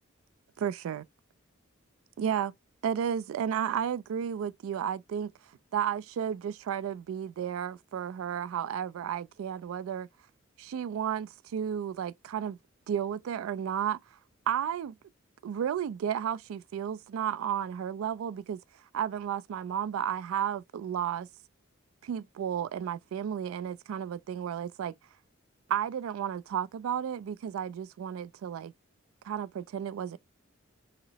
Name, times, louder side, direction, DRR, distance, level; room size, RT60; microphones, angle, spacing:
voice 1, 0.6-1.0 2.2-2.5 2.8-5.3 5.7-10.1 10.6-12.6 12.9-14.0 14.5-14.9 15.4-18.6 18.9-21.3 22.0-24.9 25.7-28.7 29.2-30.2, right 9 dB, 90° right, 0.3 m, -32 dB
2.9 x 2.8 x 2.7 m
head